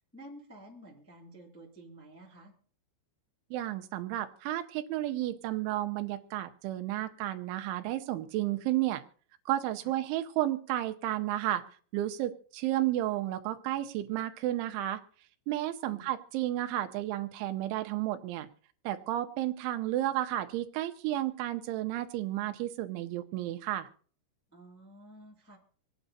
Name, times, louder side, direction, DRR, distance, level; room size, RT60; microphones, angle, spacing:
voice 1, 0.1-2.5 9.8-9.9 15.9-16.1 24.5-25.6, right 1 dB, 10° left, -3 dB, 0.7 m, -51 dB
voice 2, 3.5-9.0 9.5-11.6 11.9-15.0 15.5-18.5 18.8-23.9, right 14 dB, 90° right, 7 dB, 3.2 m, -32 dB
26.0 x 9.1 x 2.7 m, 0.44 s
omnidirectional pair, 5.3 m